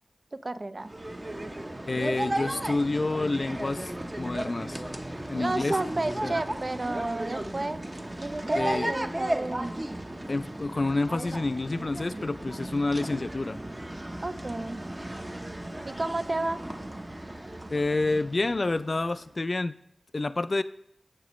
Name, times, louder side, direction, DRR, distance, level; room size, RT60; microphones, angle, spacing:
voice 1, 0.4-0.9 5.3-7.8 8.2-9.8 14.2-14.9 15.9-16.6, right 2 dB, 45° right, 12 dB, 0.4 m, -31 dB
sound 1, 0.8-19.3, right 1 dB, 30° right, 0.8 m, -35 dB
voice 2, 1.9-3.9 4.2-4.8 5.3-5.8 6.2-6.4 8.5-8.9 10.3-13.6 17.7-19.8 20.1-20.6, left 2 dB, 55° left, 14 dB, 0.3 m, -28 dB
15.0 x 5.0 x 3.1 m, 0.74 s
wide cardioid pair, 50°, 0 cm